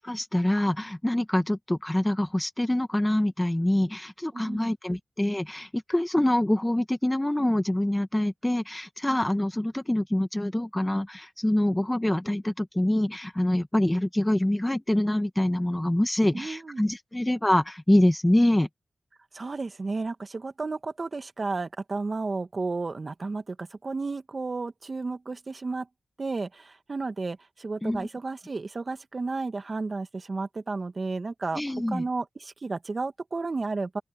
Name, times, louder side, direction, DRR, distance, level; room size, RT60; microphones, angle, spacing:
voice 1, 0.0-18.7 27.8-28.1 31.5-32.0, left 1 dB, 15° left, 1.7 m, -25 dB
voice 2, 4.3-4.7 16.3-16.8 19.3-25.9 26.2-31.6 31.9-34.0, right 3 dB, 50° right, 2.0 m, -32 dB
open air
cardioid pair, 55°, 0 cm